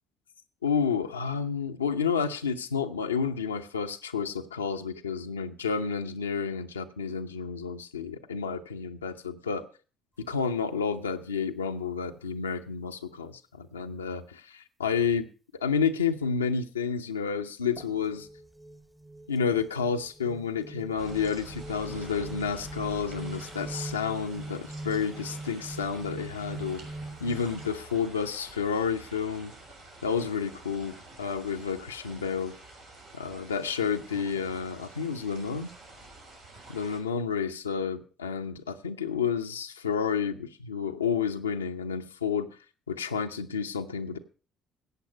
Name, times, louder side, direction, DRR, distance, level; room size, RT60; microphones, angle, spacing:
voice 1, 0.6-9.6 10.3-15.3 15.6-18.3 19.3-26.8 27.2-29.5 30.0-32.5 33.1-35.7 36.7-42.5 42.9-44.2, left 6 dB, 90° left, 6 dB, 0.7 m, -30 dB
sound 1, 17.8-27.7, right 2 dB, 5° right, 0.9 m, -42 dB
sound 2, 21.0-37.0, right 1 dB, 85° right, 4.7 m, -48 dB
15.0 x 8.4 x 5.2 m, 0.36 s
figure-of-eight pair, 50°, 0 cm